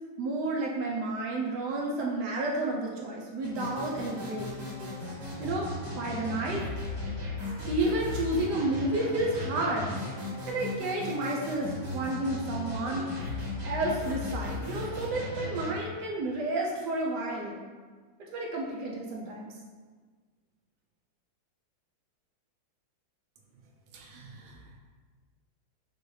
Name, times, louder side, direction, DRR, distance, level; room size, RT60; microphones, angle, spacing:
voice 1, 0.2-4.5 5.4-6.6 7.7-9.9 10.5-17.6 18.2-19.5, right 2 dB, 75° right, -2 dB, 1.0 m, -31 dB
sound 1, 3.4-15.7, left 2 dB, 35° right, 1.7 m, -36 dB
voice 2, 23.9-24.8, right 3 dB, 90° right, 0 dB, 1.5 m, -50 dB
6.0 x 2.3 x 3.1 m, 1.5 s
omnidirectional pair, 2.1 m